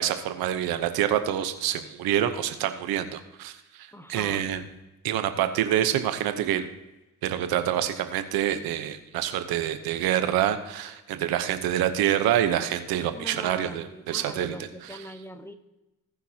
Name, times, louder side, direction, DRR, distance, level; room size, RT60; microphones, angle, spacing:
voice 1, 0.0-4.6 5.0-6.7 7.2-14.5, right 11 dB, 90° right, 9 dB, 0.9 m, -26 dB
voice 2, 3.9-4.5 5.2-5.3 13.1-15.5, equal, 5° left, 7 dB, 1.2 m, -41 dB
17.5 x 6.0 x 2.8 m, 1.0 s
supercardioid pair, 70°, 36 cm